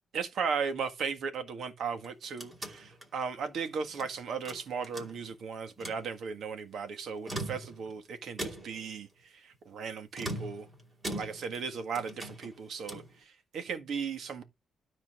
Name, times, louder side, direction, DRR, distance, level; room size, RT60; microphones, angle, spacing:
voice 1, 0.1-10.7 11.1-14.4, right 6 dB, 65° right, 1.6 m, -36 dB
sound 1, 1.9-4.1 4.4-5.4 5.7-6.1 7.1-7.9 8.4-8.9 10.1-11.7 11.9-13.2, right 1 dB, 20° right, 2.6 m, -41 dB
12.5 x 4.4 x 6.1 m
cardioid pair, 135°, 0 cm